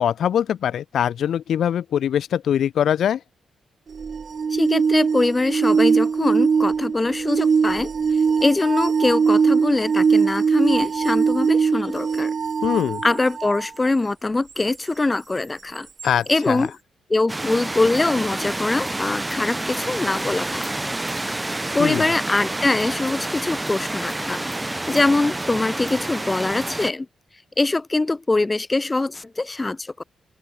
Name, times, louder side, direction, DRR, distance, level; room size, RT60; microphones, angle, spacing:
voice 1, 0.0-3.2 12.6-13.0 16.0-16.7 21.8-22.1, left 9 dB, 75° left, 1.6 m, -22 dB
sound 1, 3.9-13.7 16.0-16.1, right 5 dB, 45° right, 1.8 m, -21 dB
voice 2, 4.5-7.9 8.4-12.3 13.0-15.9 16.3-16.7 17.1-20.6 21.5-27.1 27.6-30.0, left 2 dB, 20° left, 6.2 m, -23 dB
sound 2, 17.3-26.9, right 2 dB, 15° right, 2.5 m, -28 dB
open air
cardioid pair, 90°, 0 cm